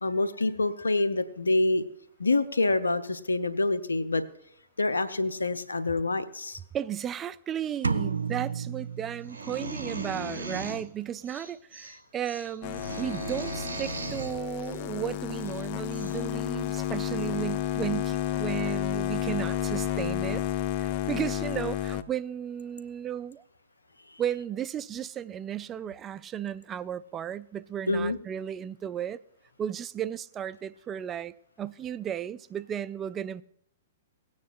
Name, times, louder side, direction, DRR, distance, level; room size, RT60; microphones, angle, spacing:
voice 1, 0.0-1.8 2.2-4.2 4.8-6.6 27.9-28.2, left 2 dB, 90° left, 0.7 m, -26 dB
voice 2, 6.7-20.4 20.8-23.4 24.2-29.2 29.6-33.4, right 10 dB, 25° right, 0.3 m, -34 dB
sound 1, 7.8-9.8, right 5 dB, 90° right, 0.4 m, -31 dB
sound 2, 9.2-10.8 11.2-11.9 12.2-14.3 15.5-15.6 15.9-16.2, right 2 dB, 60° right, 4.2 m, -37 dB
sound 3, 12.6-22.0, left 11 dB, 45° left, 0.5 m, -31 dB
17.5 x 9.5 x 2.4 m
hypercardioid pair, 115°, 0 cm